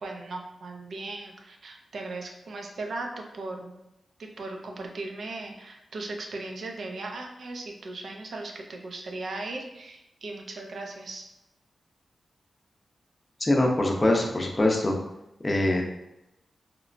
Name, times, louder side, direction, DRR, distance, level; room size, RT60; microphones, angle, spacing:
voice 1, 0.0-3.8 4.2-11.3, right 2 dB, 75° right, 2 dB, 0.4 m, -37 dB
voice 2, 13.4-15.0 15.4-15.8, left 1 dB, 35° left, 1 dB, 0.5 m, -23 dB
2.9 x 2.1 x 2.5 m, 0.89 s
cardioid pair, 45°, 0 cm